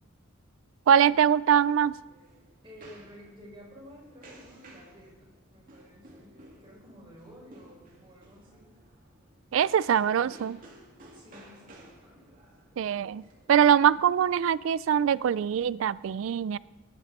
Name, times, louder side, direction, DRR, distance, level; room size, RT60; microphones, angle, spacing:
voice 1, 0.9-1.9 9.5-10.6 12.8-13.2 13.5-16.6, right 8 dB, 70° right, 20 dB, 0.3 m, -23 dB
sound 1, 1.9-14.1, right 1 dB, 40° right, 2.5 m, -55 dB
voice 2, 2.6-8.7 11.1-12.4, equal, 25° right, -5 dB, 5.6 m, -52 dB
19.5 x 11.0 x 4.2 m, 1.2 s
head